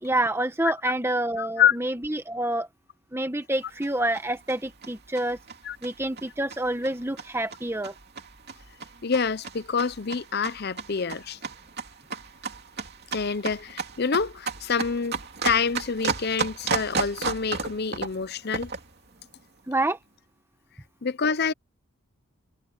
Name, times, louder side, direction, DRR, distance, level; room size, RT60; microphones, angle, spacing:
voice 1, 0.0-2.7 3.1-5.4 5.8-7.9 19.7-20.0, right 1 dB, 10° right, 1.3 m, -27 dB
voice 2, 1.4-1.8 5.6-5.8 9.0-11.4 13.1-15.2 15.4-18.7 21.0-21.5, left 6 dB, 45° left, 0.7 m, -26 dB
sound 1, 3.5-18.9, right 4 dB, 45° right, 3.0 m, -34 dB
head